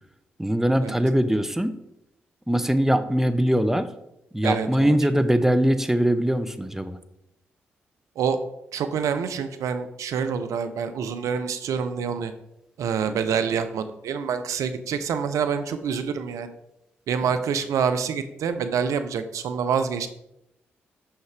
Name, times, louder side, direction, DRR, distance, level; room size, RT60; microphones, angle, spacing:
voice 1, 0.4-1.8 2.5-3.9 4.3-7.0, equal, 5° right, 10 dB, 0.6 m, -22 dB
voice 2, 4.4-5.0 8.2-8.4 8.7-12.3 12.8-16.5 17.1-20.1, right 6 dB, 70° right, 10 dB, 0.5 m, -26 dB
5.7 x 5.6 x 3.3 m, 0.83 s
hypercardioid pair, 40°, 6 cm